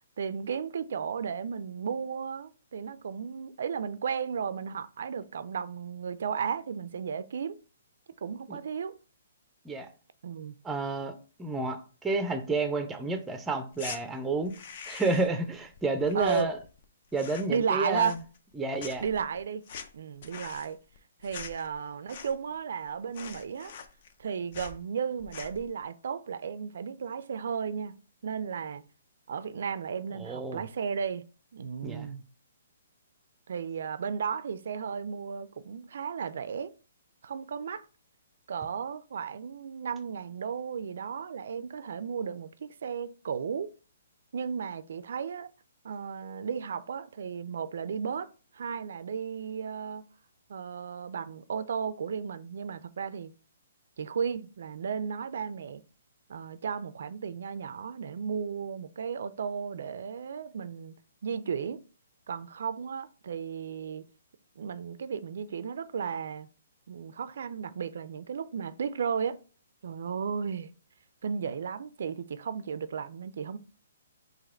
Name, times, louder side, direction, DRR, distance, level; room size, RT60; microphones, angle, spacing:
voice 1, 0.2-7.6 8.2-9.0 10.2-10.6 16.1-16.5 17.5-18.2 19.0-19.6 19.9-20.8 21.2-23.7 24.2-27.9 28.2-28.8 29.3-31.2 31.5-32.2 33.5-36.7 37.2-37.9 38.5-43.7 44.3-45.5 45.8-50.0 50.5-53.3 54.0-55.8 56.3-60.9 61.2-61.8 62.3-64.0 64.6-66.5 66.9-69.4 69.8-70.7 71.2-73.6, right 6 dB, 65° right, 0.3 m, -34 dB
voice 2, 10.6-14.5 14.9-16.6 17.1-18.1 18.6-19.0 30.2-30.6 31.8-32.1, right 3 dB, 10° right, 0.5 m, -30 dB
sound 1, 13.7-14.0 14.4-15.4 15.7-16.8 17.1-17.6 17.9-18.5 18.8-22.6 22.8-22.9 23.1-24.2 24.5-24.8 25.2-25.7, left 6 dB, 50° left, 0.6 m, -44 dB
3.9 x 2.8 x 4.3 m
hypercardioid pair, 150°, 0 cm